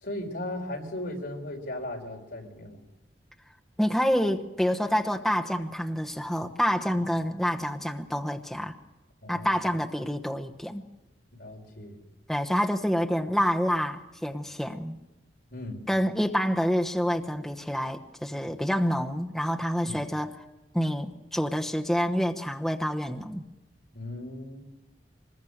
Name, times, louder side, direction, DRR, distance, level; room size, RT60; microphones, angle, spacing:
voice 1, 0.0-2.8 9.2-9.5 11.3-12.0 15.5-15.8 19.8-20.0 23.9-24.6, left 1 dB, 60° left, 2 dB, 4.6 m, -37 dB
voice 2, 3.8-8.7 9.3-10.8 12.3-14.9 15.9-20.3 20.7-23.4, equal, ahead, 2 dB, 1.1 m, -27 dB
25.0 x 21.0 x 6.6 m, 1.1 s
head